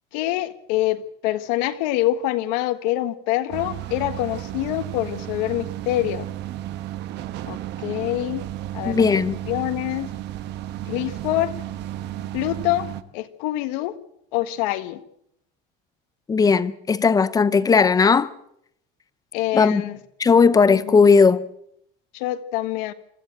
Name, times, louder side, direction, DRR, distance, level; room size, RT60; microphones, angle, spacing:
voice 1, 0.1-6.3 7.5-8.4 8.7-9.0 9.5-10.1 10.9-11.5 12.3-12.9 13.1-14.0 14.3-15.0 19.3-20.0 20.7-21.0 22.1-22.9, left 15 dB, 85° left, 1.6 m, -25 dB
sound 1, 3.5-13.0, right 13 dB, 55° right, 1.2 m, -33 dB
voice 2, 8.9-9.4 16.3-18.3 19.5-19.8 20.2-21.4, left 5 dB, 15° left, 0.7 m, -17 dB
26.0 x 14.0 x 7.7 m
cardioid pair, 150°, 21 cm